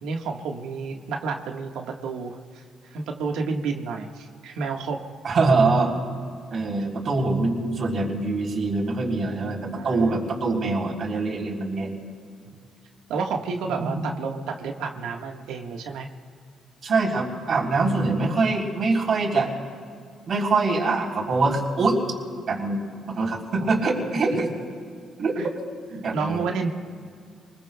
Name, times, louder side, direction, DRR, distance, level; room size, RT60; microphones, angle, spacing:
voice 1, 0.0-5.0 9.8-10.3 12.5-12.6 13.1-16.1 23.7-23.8 25.4-25.5 26.1-26.7, right 5 dB, 90° right, 2 dB, 1.5 m, -30 dB
voice 2, 5.2-5.9 6.5-11.9 16.8-19.5 20.3-22.0 22.5-22.8 23.1-24.5 25.2-25.4 25.9-26.4, right 3 dB, 55° right, -1 dB, 3.6 m, -24 dB
28.0 x 21.5 x 2.3 m, 2.2 s
cardioid pair, 90°, 0 cm